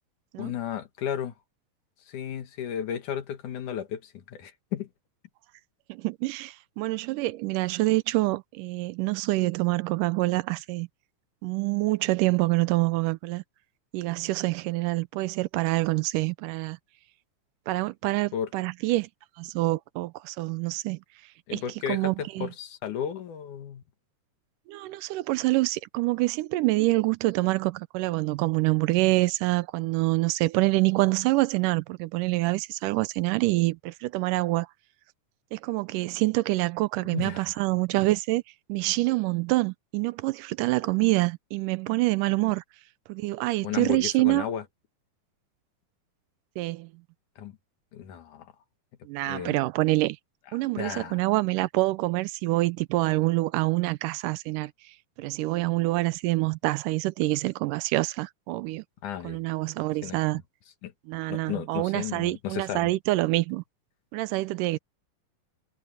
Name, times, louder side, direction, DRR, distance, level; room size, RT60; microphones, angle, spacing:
voice 1, 0.4-1.3 2.1-4.9 18.3-18.5 21.5-23.8 37.1-37.6 43.6-44.6 47.4-47.5 47.9-48.5 49.3-49.6 50.8-51.3 59.0-59.4 60.0-60.2 60.8-60.9 61.3-62.9, left 9 dB, 70° left, 3.0 m, -34 dB
voice 2, 5.9-10.9 11.4-13.4 13.9-16.8 17.7-19.1 19.4-21.0 21.5-21.6 21.9-22.5 24.7-34.7 35.5-38.4 38.7-42.6 43.1-44.5 46.6-46.9 49.1-50.2 50.5-54.7 55.2-58.8 59.2-60.4 61.1-63.6 64.1-64.8, right 20 dB, 90° right, 2.2 m, -26 dB
omnidirectional pair, 3.7 m